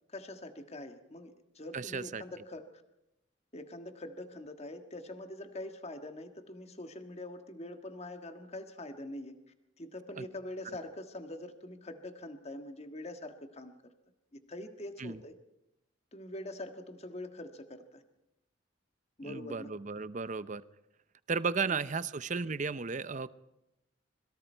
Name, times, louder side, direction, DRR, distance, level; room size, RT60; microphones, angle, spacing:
voice 1, 0.1-2.7 3.5-9.4 9.8-13.9 14.3-15.4 16.1-18.0 19.2-19.7 21.7-21.8, left 1 dB, 35° left, 7 dB, 1.6 m, -44 dB
voice 2, 1.7-2.2 10.2-10.3 15.0-15.2 19.2-20.6 21.3-23.3, right 5 dB, 40° right, 15 dB, 0.7 m, -34 dB
25.5 x 22.5 x 4.6 m, 0.89 s
head